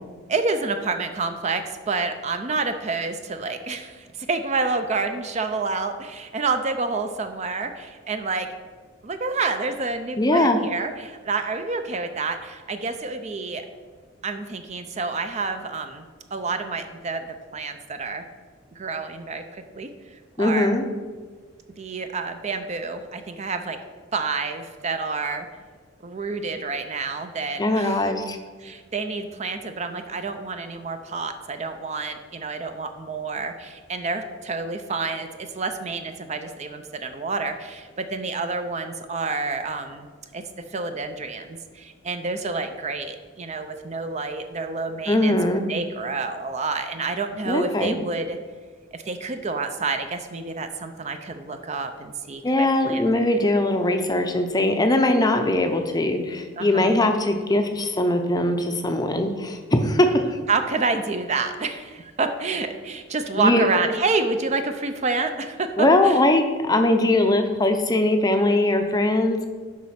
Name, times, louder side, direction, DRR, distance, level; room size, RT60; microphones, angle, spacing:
voice 1, 0.3-8.5 9.0-13.6 14.2-16.1 16.3-17.3 17.5-18.2 18.7-20.7 21.8-23.8 24.1-25.5 26.0-28.1 28.6-40.1 40.3-40.4 40.7-45.4 45.7-48.4 48.9-53.3 56.6-56.9 60.5-66.2, right 4 dB, 35° right, 8 dB, 0.5 m, -28 dB
voice 2, 10.2-10.6 20.4-20.8 27.6-28.4 45.1-45.6 47.5-48.0 52.4-60.4 63.4-63.6 65.8-69.4, left 1 dB, 20° left, 6 dB, 0.6 m, -21 dB
7.4 x 5.1 x 5.6 m, 1.5 s
head